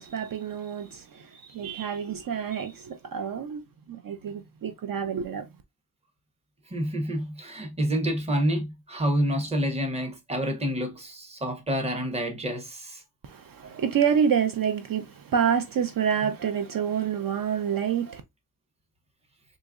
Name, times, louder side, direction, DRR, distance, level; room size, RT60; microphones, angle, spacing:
voice 1, 0.0-3.6 3.9-5.5 13.2-18.2, right 7 dB, 60° right, 0.5 m, -28 dB
voice 2, 6.7-13.0, equal, 15° right, 0.7 m, -28 dB
3.8 x 2.9 x 2.4 m
wide cardioid pair, 170°, 39 cm